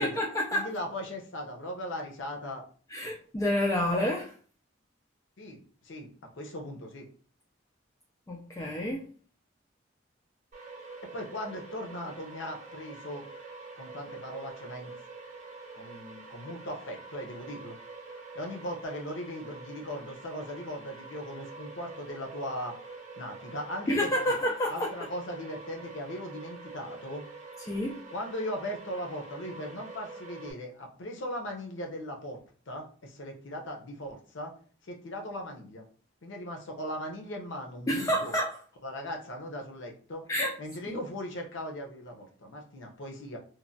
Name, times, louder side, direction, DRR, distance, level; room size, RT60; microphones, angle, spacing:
voice 1, 0.0-0.7 2.9-4.3 8.3-9.1 23.9-24.9 27.6-28.0 37.9-38.6 40.3-40.6 40.9-41.0, left 1 dB, 15° left, 0.3 m, -29 dB
voice 2, 0.5-2.6 5.4-6.1 6.4-7.1 11.1-13.3 13.8-14.9 15.7-17.8 18.3-22.8 23.2-24.4 24.7-27.2 28.1-32.4 32.7-34.5 34.8-35.9 36.2-38.4 38.8-40.2 40.6-43.4, equal, 75° left, 0.7 m, -38 dB
sound 1, 10.5-30.5, right 3 dB, 40° right, 1.0 m, -46 dB
2.9 x 2.1 x 2.6 m
head